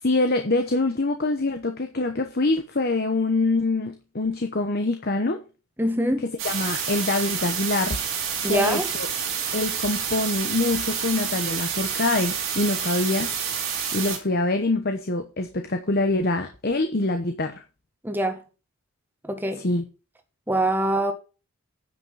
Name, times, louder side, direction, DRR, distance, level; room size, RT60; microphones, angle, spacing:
voice 1, 0.0-5.4 6.4-8.0 8.5-9.1 9.5-13.3 13.9-17.6 19.6-19.8, left 2 dB, 45° left, 1.0 m, -25 dB
voice 2, 5.8-6.2 8.4-8.8 18.0-18.4 19.3-19.6 20.5-21.1, right 1 dB, 10° right, 1.5 m, -23 dB
sound 1, 6.4-14.2, right 7 dB, 60° right, 3.2 m, -28 dB
9.8 x 6.1 x 5.6 m
head